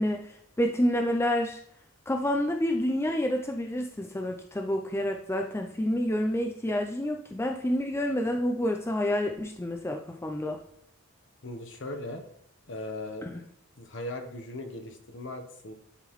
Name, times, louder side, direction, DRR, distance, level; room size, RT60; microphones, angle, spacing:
voice 1, 0.0-1.6 2.1-10.6 13.2-13.4, left 1 dB, 10° left, 3 dB, 0.3 m, -28 dB
voice 2, 11.4-12.2 12.7-13.3 13.8-15.7, left 1 dB, 55° left, 5 dB, 0.9 m, -38 dB
11.0 x 3.7 x 3.0 m, 0.72 s
head